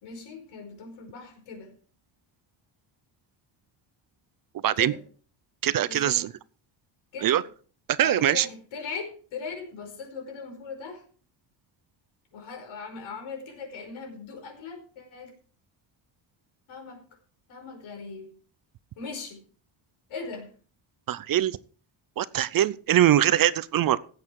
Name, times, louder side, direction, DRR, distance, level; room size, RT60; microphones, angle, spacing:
voice 1, 0.0-1.7 4.7-5.0 5.9-6.3 7.1-7.4 8.0-11.0 12.3-15.3 16.7-17.0 17.5-18.4 19.0-19.4 20.1-20.5, left 5 dB, 75° left, 4 dB, 5.1 m, -39 dB
voice 2, 5.6-6.3 7.2-7.4 7.9-8.5 21.1-21.6 22.2-24.0, right 12 dB, 45° right, 18 dB, 0.6 m, -22 dB
15.5 x 8.6 x 4.7 m, 0.43 s
cardioid pair, 160°, 48 cm